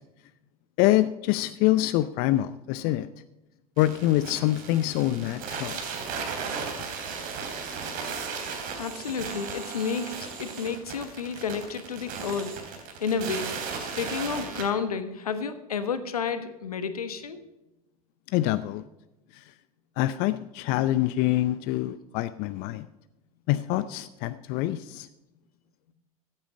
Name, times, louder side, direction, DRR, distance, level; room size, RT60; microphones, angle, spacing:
voice 1, 0.8-3.1 3.8-5.8 18.3-18.8 19.3-19.4 20.0-22.9 23.5-25.1, left 15 dB, 50° left, 14 dB, 0.6 m, -25 dB
sound 1, 3.8-14.6, right 5 dB, 50° right, 3.3 m, -36 dB
voice 2, 8.8-12.6 13.0-17.4, left 6 dB, 85° left, 11 dB, 1.3 m, -31 dB
15.0 x 8.9 x 5.2 m, 0.98 s
hypercardioid pair, 85°, 19 cm